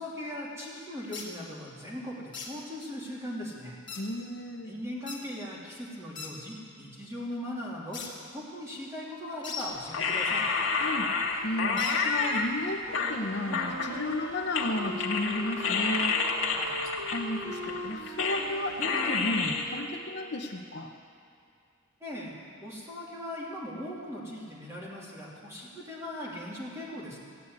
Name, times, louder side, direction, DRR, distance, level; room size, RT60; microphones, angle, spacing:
voice 1, 0.0-3.7 4.7-8.0 8.3-10.5 16.5-16.8 22.0-22.3 22.6-27.2, left 1 dB, 15° right, -6 dB, 2.9 m, -39 dB
sound 1, 1.1-1.3 2.3-2.5 3.9-4.0 5.1-5.2 6.1-6.3 7.9-8.1 9.4-9.7 11.8-12.0, left 5 dB, 20° left, 2.0 m, -38 dB
voice 2, 3.9-4.7 10.8-11.1 11.4-16.6 17.1-20.9, left 1 dB, 50° left, 3 dB, 0.8 m, -33 dB
sound 2, 9.9-12.5 12.9-14.3 14.5-18.6 18.8-19.7, left 4 dB, 65° left, 1.5 m, -29 dB
Wind instrument woodwind instrument, 12.9-20.7, right 1 dB, 75° right, 2.4 m, -41 dB
15.5 x 8.2 x 9.7 m, 2.4 s
head